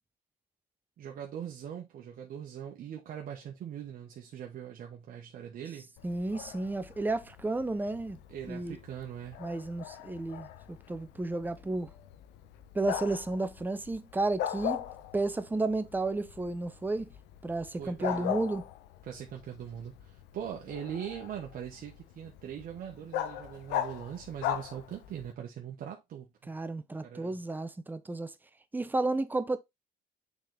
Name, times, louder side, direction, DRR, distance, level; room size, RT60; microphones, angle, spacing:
voice 1, 1.0-5.9 8.3-9.4 17.7-18.4 19.0-26.5 27.0-27.4, right 9 dB, 60° right, 1.3 m, -41 dB
Bark, 6.0-25.3, left 11 dB, 90° left, 0.9 m, -40 dB
voice 2, 6.0-8.2 8.5-8.8 9.4-11.9 12.7-14.8 15.1-17.1 17.4-18.6 26.5-28.3 28.7-29.6, right 2 dB, 10° right, 0.7 m, -32 dB
7.1 x 4.0 x 3.4 m
cardioid pair, 110°, 17 cm